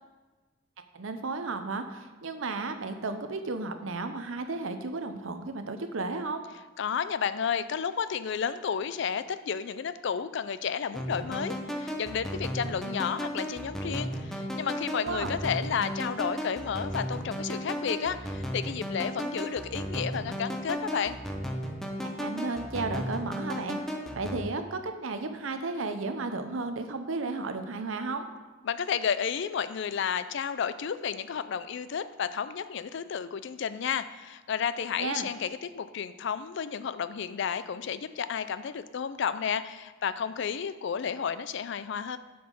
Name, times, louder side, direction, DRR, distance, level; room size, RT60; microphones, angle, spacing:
voice 1, 0.9-6.4 15.0-15.4 22.0-23.8 24.2-28.3 35.0-35.3, right 3 dB, 75° right, 8 dB, 0.7 m, -33 dB
voice 2, 6.8-21.2 28.6-42.2, left 7 dB, 60° left, 13 dB, 0.4 m, -32 dB
sound 1, 10.9-24.4, equal, ahead, 0.7 m, -35 dB
7.8 x 5.5 x 5.3 m, 1.2 s
head